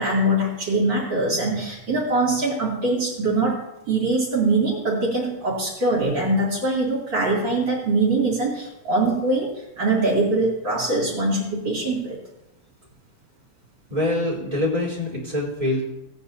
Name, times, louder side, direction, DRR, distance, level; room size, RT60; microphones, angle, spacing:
voice 1, 0.0-3.6 3.9-9.5 9.8-12.2, right 2 dB, 65° right, -7 dB, 3.4 m, -22 dB
voice 2, 13.9-15.8, left 1 dB, 15° right, -5 dB, 3.8 m, -24 dB
17.5 x 9.2 x 2.8 m, 0.93 s
omnidirectional pair, 2.2 m